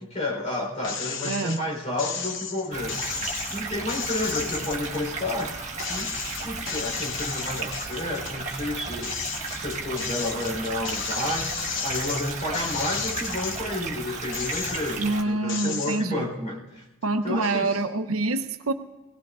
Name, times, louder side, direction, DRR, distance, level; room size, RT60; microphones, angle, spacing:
voice 1, 0.0-3.1 3.5-5.6 5.9-6.2 6.4-9.2 9.5-16.8 17.2-17.8, left 1 dB, 35° left, 0 dB, 3.9 m, -31 dB
sound 1, 0.8-1.6 2.0-5.5 5.8-8.4 8.8-13.8 14.2-15.1 15.5-16.0, left 6 dB, 60° left, 0.9 m, -33 dB
voice 2, 1.2-1.6 15.0-16.3 17.0-18.7, right 2 dB, 85° right, 8 dB, 0.8 m, -26 dB
sound 2, 2.7-15.2, right 3 dB, 35° right, 1.4 m, -34 dB
22.5 x 18.0 x 2.5 m, 1.1 s
head